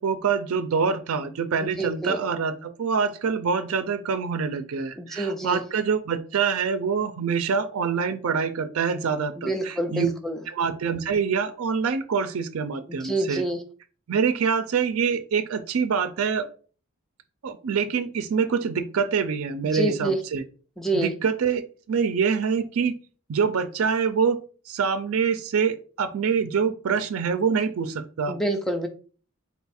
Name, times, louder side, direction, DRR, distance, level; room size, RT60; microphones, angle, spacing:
voice 1, 0.0-10.1 10.5-13.4 14.1-16.5 17.4-20.4 20.9-21.6 21.9-22.9 23.3-24.4 24.7-28.4, right 6 dB, 75° right, 10 dB, 0.4 m, -25 dB
voice 2, 1.8-2.2 5.0-5.6 9.4-10.4 12.9-13.6 19.7-20.2 20.8-21.1 28.3-28.9, right 2 dB, ahead, 4 dB, 0.5 m, -27 dB
4.1 x 2.3 x 4.1 m, 0.39 s
head